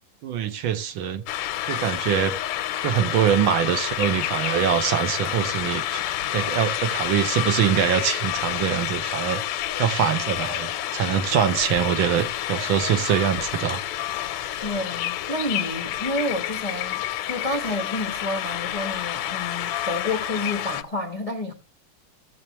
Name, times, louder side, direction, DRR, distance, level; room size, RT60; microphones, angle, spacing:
voice 1, 0.2-1.2 1.7-2.4 2.8-6.0 6.3-9.4 9.8-13.8, right 9 dB, 70° right, 1.6 m, -24 dB
sound 1, 1.3-20.8, left 12 dB, 90° left, 1.6 m, -29 dB
voice 2, 14.6-21.5, left 2 dB, 45° left, 0.4 m, -29 dB
15.5 x 7.8 x 2.9 m
omnidirectional pair, 2.4 m